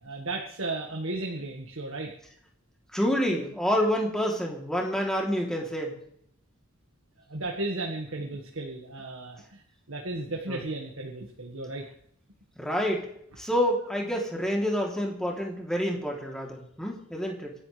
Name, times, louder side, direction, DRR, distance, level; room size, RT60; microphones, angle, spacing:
voice 1, 0.0-2.1 7.3-9.6 9.9-11.9, right 2 dB, 75° right, 1 dB, 1.8 m, -34 dB
voice 2, 2.9-6.0 10.5-10.6 12.6-13.0 13.4-17.5, equal, 5° left, -1 dB, 3.2 m, -28 dB
27.0 x 11.5 x 3.4 m, 0.69 s
head